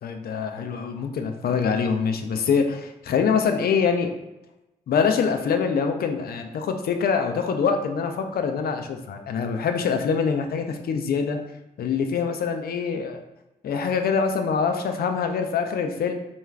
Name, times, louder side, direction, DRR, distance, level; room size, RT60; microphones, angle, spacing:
voice 1, 0.0-4.1 4.9-11.4 11.8-13.2 13.6-16.2, left 6 dB, 65° left, 6 dB, 0.4 m, -24 dB
2.3 x 2.3 x 3.2 m, 0.96 s
supercardioid pair, 40°, 17 cm